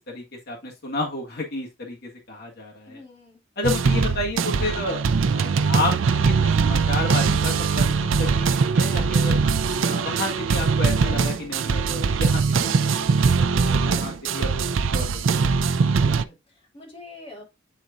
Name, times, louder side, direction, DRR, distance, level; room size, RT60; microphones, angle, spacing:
voice 1, 0.1-3.0 3.6-5.0 5.3-9.4 9.8-12.8 13.3-14.7 14.9-15.3, left 2 dB, 55° left, -2 dB, 1.8 m, -31 dB
voice 2, 2.9-3.4 13.7-14.4 16.0-17.4, left 2 dB, 30° left, -3 dB, 2.8 m, -45 dB
sound 1, 3.6-16.2, right 5 dB, 80° right, 0.5 m, -21 dB
9.4 x 4.1 x 2.4 m, 0.22 s
head